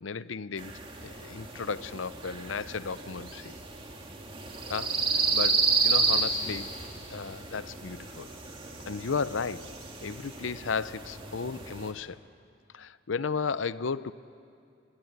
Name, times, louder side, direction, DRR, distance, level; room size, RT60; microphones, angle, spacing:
voice 1, 0.0-3.6 4.7-5.0 5.3-6.7 7.1-8.3 8.9-9.7 10.0-12.2 12.7-14.1, left 5 dB, 90° left, 0.6 m, -34 dB
sound 1, 0.6-11.9, right 4 dB, 25° right, 2.4 m, -31 dB
27.0 x 21.5 x 8.1 m
head